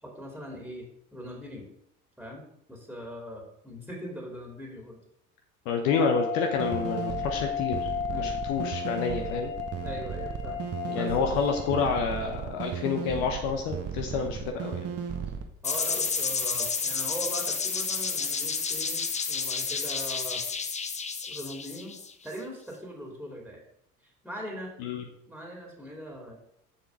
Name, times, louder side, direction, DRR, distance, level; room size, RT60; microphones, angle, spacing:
voice 1, 0.0-0.9 1.1-1.7 2.2-5.0 8.1-8.3 9.8-10.6 10.9-11.4 15.6-20.4 21.2-23.6 24.0-24.7 25.3-26.4, equal, ahead, -1 dB, 2.5 m, -40 dB
voice 2, 5.6-7.9 8.2-9.5 10.9-14.9 24.8-25.0, left 5 dB, 55° left, 4 dB, 1.1 m, -29 dB
sound 1, 5.9-11.9, left 8 dB, 30° left, 4.0 m, -34 dB
sound 2, 6.6-15.4, right 7 dB, 30° right, 1.2 m, -35 dB
sound 3, 15.6-22.4, left 5 dB, 15° left, 0.7 m, -30 dB
7.6 x 7.0 x 5.0 m, 0.73 s
figure-of-eight pair, 60°, 44 cm